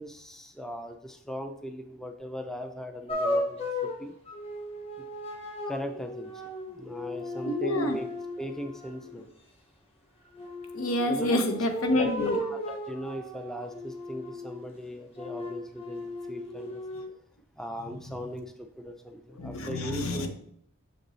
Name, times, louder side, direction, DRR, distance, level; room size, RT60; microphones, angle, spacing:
voice 1, 0.0-4.1 5.7-6.4 6.7-8.1 8.4-9.3 11.1-11.6 12.0-16.8 17.6-20.3, equal, ahead, 5 dB, 0.3 m, -38 dB
sound 1, 3.1-9.1 10.3-14.7 15.2-17.0, left 1 dB, 25° left, 1.1 m, -36 dB
voice 2, 7.5-8.0 10.7-12.4 19.4-20.3, left 1 dB, 85° left, 6 dB, 0.9 m, -28 dB
6.7 x 5.2 x 3.1 m, 0.67 s
head